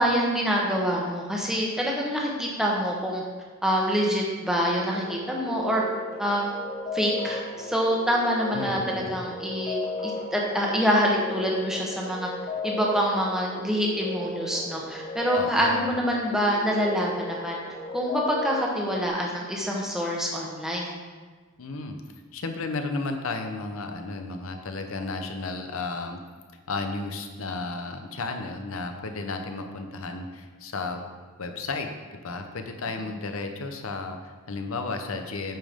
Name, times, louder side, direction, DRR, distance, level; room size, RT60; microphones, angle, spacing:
voice 1, 0.0-3.2 3.6-5.8 6.2-6.6 6.9-12.3 12.6-17.6 17.9-20.9, equal, ahead, -2 dB, 1.0 m, -26 dB
sound 1, 4.8-19.1, left 2 dB, 40° left, 1.7 m, -35 dB
voice 2, 8.5-9.1 15.3-15.9 21.6-22.0 22.3-26.2 26.7-31.0 31.4-31.9 32.2-35.6, left 3 dB, 80° left, 5 dB, 0.8 m, -33 dB
8.8 x 5.2 x 3.6 m, 1.4 s
head